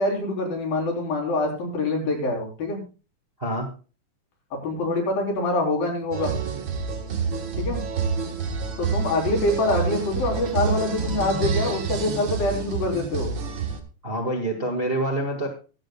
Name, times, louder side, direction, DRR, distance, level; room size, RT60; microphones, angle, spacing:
voice 1, 0.0-2.8 4.5-6.4 7.6-7.8 8.8-13.3, left 2 dB, 75° left, 0 dB, 5.8 m, -25 dB
sound 1, 6.1-13.8, right 5 dB, 50° right, 1.6 m, -28 dB
voice 2, 14.0-15.5, right 1 dB, 20° right, 1 dB, 1.6 m, -26 dB
23.5 x 8.0 x 2.4 m, 0.33 s
omnidirectional pair, 4.1 m